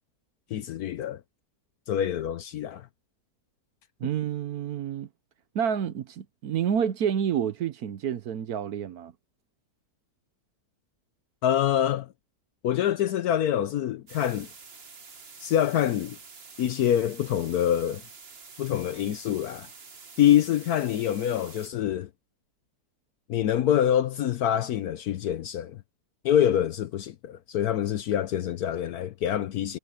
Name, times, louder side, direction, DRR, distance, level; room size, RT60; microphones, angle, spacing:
voice 1, 0.5-1.2 1.9-2.9 11.4-12.1 12.6-14.5 15.4-16.2 16.6-18.0 18.6-19.7 20.2-22.1 23.3-25.8 26.2-29.8, left 10 dB, 70° left, 1.2 m, -25 dB
voice 2, 4.0-5.1 5.5-9.1, right 8 dB, 70° right, 1.3 m, -29 dB
sound 1, 14.1-21.7, right 5 dB, 40° right, 1.6 m, -48 dB
omnidirectional pair, 1.7 m